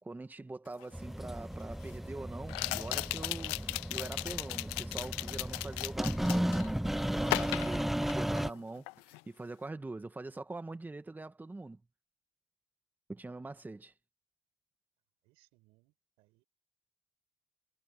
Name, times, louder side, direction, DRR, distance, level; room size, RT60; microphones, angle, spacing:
voice 1, 0.0-3.6 3.9-11.8 13.1-13.9, right 2 dB, 20° right, 2.0 m, -43 dB
sound 1, 0.8-0.9 2.5-6.7 7.2-8.6 8.9-9.2, left 26 dB, 85° left, 0.4 m, -36 dB
sound 2, 0.9-8.5, equal, ahead, 0.4 m, -35 dB
voice 2, 15.2-16.4, right 22 dB, 85° right, 5.3 m, -70 dB
supercardioid pair, 65°, 10 cm